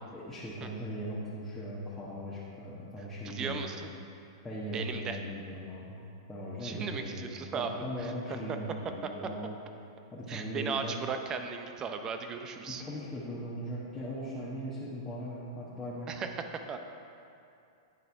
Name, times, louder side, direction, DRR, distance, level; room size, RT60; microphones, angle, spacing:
voice 1, 0.1-3.9 4.4-6.0 6.3-9.6 10.1-10.9 12.6-16.1, equal, 10° left, -9 dB, 1.2 m, -39 dB
voice 2, 3.2-3.8 4.7-5.2 6.6-7.7 8.0-8.6 10.3-12.8 16.1-16.3 16.7-16.8, right 6 dB, 25° right, 6 dB, 0.6 m, -36 dB
9.3 x 4.1 x 4.9 m, 2.6 s
hypercardioid pair, 115°, 2 cm